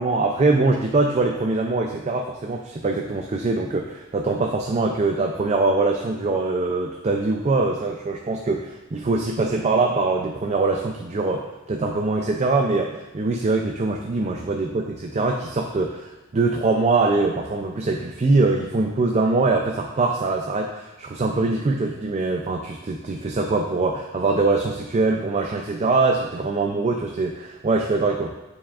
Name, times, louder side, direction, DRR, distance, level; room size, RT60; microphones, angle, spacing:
voice 1, 0.0-28.3, right 3 dB, 30° right, 2 dB, 0.4 m, -23 dB
9.1 x 4.9 x 2.4 m, 1.0 s
head